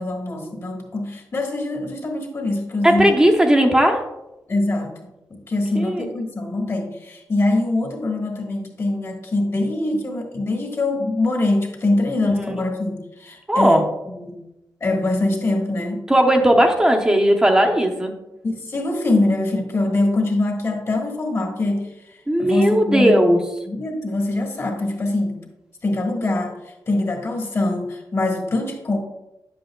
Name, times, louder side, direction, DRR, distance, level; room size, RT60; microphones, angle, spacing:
voice 1, 0.0-3.1 4.5-14.4 14.8-16.0 18.4-23.4 23.6-25.4 25.8-29.0, left 2 dB, 40° left, 1 dB, 1.4 m, -23 dB
voice 2, 2.8-4.0 5.7-6.1 12.2-12.6 13.5-13.8 16.1-18.1 22.3-23.4, right 1 dB, 10° right, 3 dB, 0.8 m, -17 dB
10.0 x 7.8 x 2.3 m, 0.94 s
wide cardioid pair, 170°, 7 cm